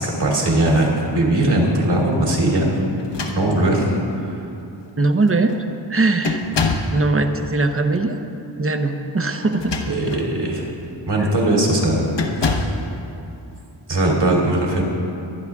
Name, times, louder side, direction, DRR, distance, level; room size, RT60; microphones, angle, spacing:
voice 1, 0.0-2.8 3.3-4.4 9.8-10.7 11.0-12.1 12.4-12.7 13.9-14.8, right 1 dB, 60° right, -1 dB, 3.0 m, -19 dB
sound 1, 3.0-3.9 4.8-4.9 5.2-5.6 6.2-7.0 9.4-10.3 10.8-11.0 12.1-12.9, left 4 dB, 60° left, 1.2 m, -25 dB
voice 2, 5.0-5.5 5.9-6.4 6.9-8.2 8.6-9.7, right 3 dB, 30° right, 6 dB, 0.9 m, -20 dB
22.5 x 9.8 x 3.6 m, 2.7 s
wide cardioid pair, 110°, 47 cm